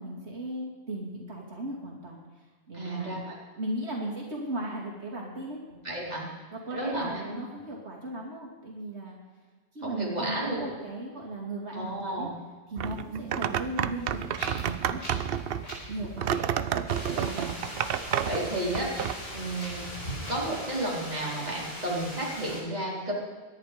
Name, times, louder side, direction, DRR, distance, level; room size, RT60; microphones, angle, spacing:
voice 1, 0.0-2.2 2.7-3.2 3.6-5.6 6.5-9.2 9.7-12.3 12.7-14.2 14.6-15.3 15.9-16.4, right 1 dB, 85° right, -2 dB, 2.9 m, -37 dB
voice 2, 2.7-3.3 5.8-6.3 6.7-7.4 9.8-10.7 11.7-12.3 13.0-13.2 17.1-17.6 18.2-18.9 19.3-19.9 20.3-23.1, right 1 dB, 40° right, -5 dB, 4.0 m, -32 dB
sound 1, 12.8-19.1, right 9 dB, 65° right, 0.8 m, -30 dB
Wind, 14.0-20.4, right 1 dB, 80° left, 4.9 m, -43 dB
sound 2, 16.9-22.6, left 1 dB, 65° left, 5.8 m, -41 dB
22.5 x 10.5 x 5.1 m, 1.4 s
omnidirectional pair, 1.1 m